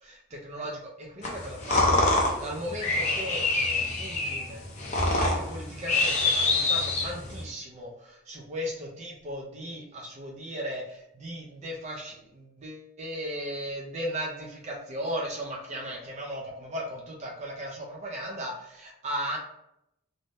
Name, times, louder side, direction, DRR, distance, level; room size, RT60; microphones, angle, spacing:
voice 1, 0.0-4.6 5.2-19.4, equal, 30° right, -1 dB, 0.4 m, -37 dB
sound 1, 1.2-7.4, left 2 dB, 30° left, 0.5 m, -26 dB
2.6 x 2.1 x 3.2 m, 0.80 s
head